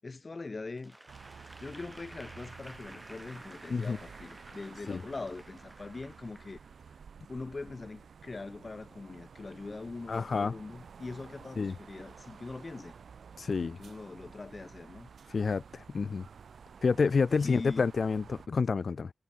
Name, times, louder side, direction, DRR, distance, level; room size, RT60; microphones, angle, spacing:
voice 1, 0.0-1.0 1.4-6.6 7.3-12.9 13.6-15.1 17.4-17.9, left 3 dB, 35° left, 2.3 m, -42 dB
Applause / Crowd, 0.8-7.0, right 1 dB, 10° right, 5.7 m, -53 dB
sound 1, 1.1-18.5, right 6 dB, 70° right, 2.8 m, -52 dB
voice 2, 10.1-10.5 11.6-11.8 13.4-13.8 15.3-16.3 16.8-19.1, left 4 dB, 55° left, 0.4 m, -29 dB
wide cardioid pair, 85°, 0 cm